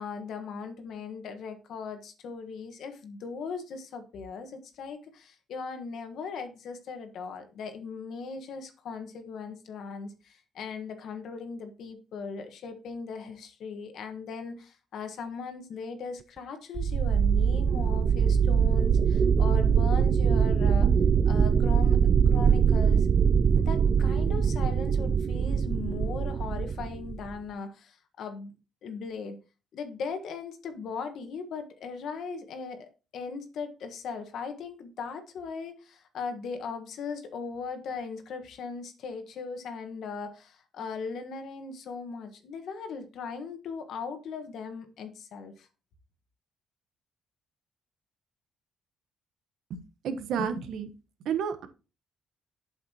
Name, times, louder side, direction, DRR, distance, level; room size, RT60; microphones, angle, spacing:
voice 1, 0.0-20.9 21.2-23.1 23.6-28.5 28.8-29.4 29.7-45.7, left 5 dB, 70° left, 7 dB, 1.4 m, -38 dB
sound 1, 16.8-27.4, right 7 dB, 45° right, 0.3 m, -23 dB
voice 2, 49.7-50.9 51.2-51.7, right 7 dB, 80° right, 10 dB, 1.0 m, -31 dB
8.2 x 6.5 x 2.9 m, 0.31 s
cardioid pair, 90°, 0 cm